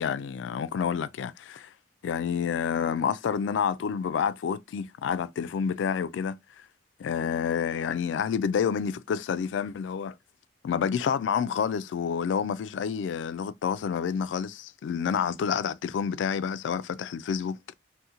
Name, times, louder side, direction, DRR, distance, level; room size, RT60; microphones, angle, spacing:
voice 1, 0.0-1.7 2.0-6.4 7.0-10.1 10.6-17.6, left 7 dB, 85° left, 0.3 m, -29 dB
2.8 x 2.1 x 3.6 m
head